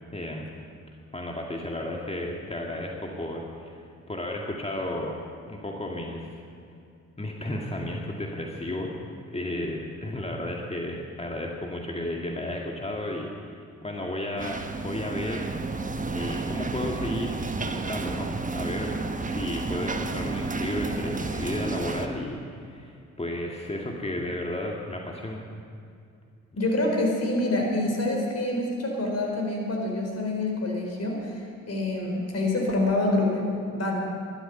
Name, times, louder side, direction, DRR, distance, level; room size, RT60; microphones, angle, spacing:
voice 1, 0.1-0.5 1.1-5.2 5.5-6.4 7.2-9.0 9.3-13.3 13.8-15.5 16.1-18.9 19.2-25.4, left 1 dB, 15° left, 0 dB, 2.0 m, -33 dB
sound 1, 14.4-22.1, right 3 dB, 20° right, 1.2 m, -31 dB
voice 2, 26.6-33.4 33.7-33.9, left 2 dB, 40° left, 0 dB, 4.6 m, -26 dB
20.5 x 12.5 x 5.5 m, 2.4 s
figure-of-eight pair, 45°, 38 cm